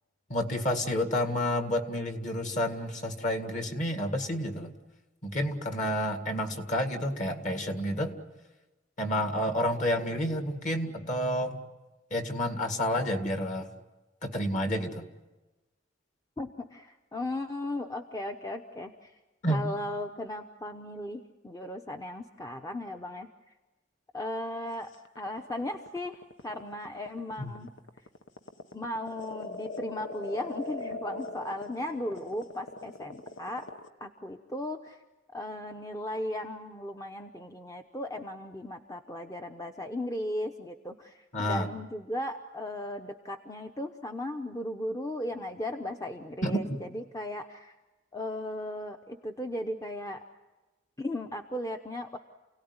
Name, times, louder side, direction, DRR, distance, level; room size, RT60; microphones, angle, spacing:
voice 1, 0.3-4.7 5.2-8.2 9.0-11.6 12.1-13.7 14.2-15.1 19.4-19.7 27.4-27.5 41.3-41.7 46.4-46.8, equal, 40° left, 6 dB, 2.1 m, -30 dB
voice 2, 16.4-19.1 19.5-23.3 24.1-24.9 25.2-27.7 28.7-33.7 34.0-35.0 35.3-47.7 48.1-50.2 51.0-52.2, left 1 dB, 20° left, 4 dB, 0.8 m, -36 dB
sound 1, 24.9-33.9, left 3 dB, 80° left, 1.3 m, -41 dB
29.0 x 17.5 x 9.6 m, 1.2 s
head